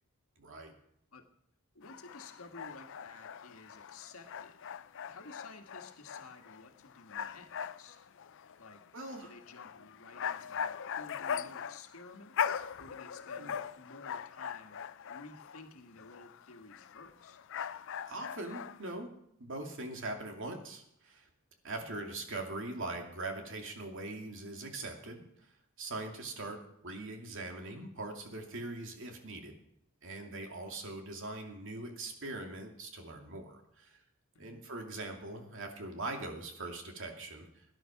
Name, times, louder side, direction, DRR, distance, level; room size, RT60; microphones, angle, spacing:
voice 1, 0.4-0.7 8.9-9.3 13.4-13.5 18.1-19.1 19.4-21.3 21.6-29.6 30.0-34.0 34.4-37.6, right 2 dB, 65° right, 3 dB, 2.5 m, -42 dB
voice 2, 1.7-4.8 5.1-7.5 7.8-8.0 8.6-8.8 9.2-14.8 15.1-17.4 21.8-22.0 34.3-34.7, left 3 dB, 75° left, 5 dB, 1.7 m, -53 dB
sound 1, 1.8-15.7 16.0-18.9, left 7 dB, 60° left, 0.5 m, -40 dB
17.0 x 10.5 x 5.9 m, 0.75 s
head